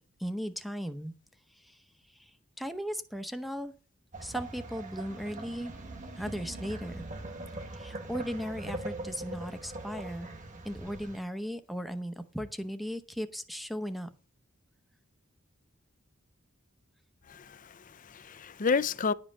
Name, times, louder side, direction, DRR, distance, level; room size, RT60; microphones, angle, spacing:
voice 1, 0.2-1.1 1.5-3.7 4.2-5.7 6.2-7.0 7.7-10.3 10.6-14.1, equal, ahead, 0.8 m, -37 dB
sound 1, 4.1-11.2, right 2 dB, 35° right, 1.5 m, -41 dB
voice 2, 17.3-19.1, left 5 dB, 40° left, 0.5 m, -31 dB
11.0 x 5.3 x 8.5 m
head